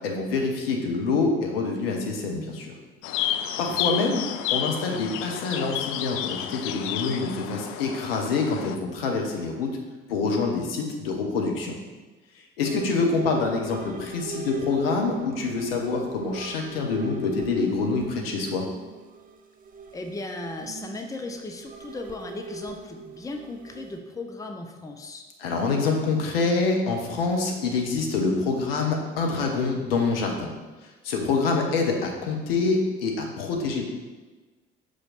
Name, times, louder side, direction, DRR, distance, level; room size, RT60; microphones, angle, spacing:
voice 1, 0.0-2.7 3.6-4.2 4.5-9.7 10.1-11.8 12.6-18.6 25.4-30.5 31.0-33.8, left 4 dB, 70° left, 2 dB, 1.0 m, -26 dB
sound 1, 3.0-8.8, left 11 dB, 45° left, 0.4 m, -31 dB
sound 2, 12.6-24.0, right 5 dB, 30° right, 0.7 m, -41 dB
voice 2, 12.7-13.1 19.9-25.2, left 2 dB, 10° left, 4 dB, 0.6 m, -37 dB
6.1 x 5.1 x 4.0 m, 1.2 s
figure-of-eight pair, 55°, 30 cm